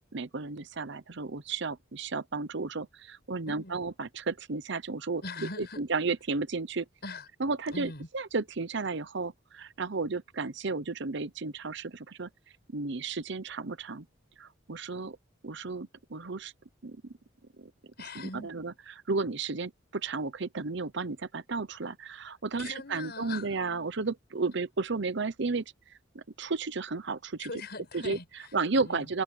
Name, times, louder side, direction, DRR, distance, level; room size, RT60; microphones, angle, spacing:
voice 1, 0.0-5.2 5.6-6.9 7.4-12.3 12.7-14.1 14.4-15.2 15.4-16.5 16.8-17.1 17.6-17.7 18.1-27.5 27.9-28.2 28.5-29.2, right 4 dB, 65° right, 0.9 m, -33 dB
voice 2, 5.2-5.8 7.0-7.3 7.7-8.1 18.0-18.5 22.6-23.5 27.4-28.5 28.8-29.1, left 3 dB, 55° left, 7.7 m, -41 dB
head